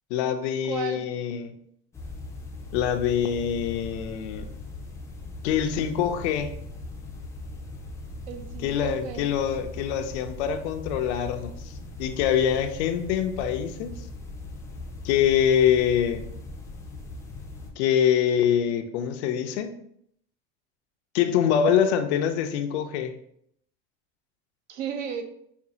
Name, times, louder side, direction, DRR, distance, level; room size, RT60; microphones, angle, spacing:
voice 1, 0.1-1.5 2.7-4.5 5.4-6.5 8.6-11.5 12.0-13.9 15.0-16.3 17.8-19.7 21.1-23.2, left 9 dB, 90° left, 8 dB, 0.5 m, -24 dB
voice 2, 0.6-1.0 8.3-9.2 24.7-25.2, right 7 dB, 75° right, 7 dB, 0.7 m, -34 dB
sound 1, 1.9-17.7, left 2 dB, 10° left, 0.3 m, -39 dB
5.1 x 2.4 x 2.7 m, 0.70 s
supercardioid pair, 140°, 32 cm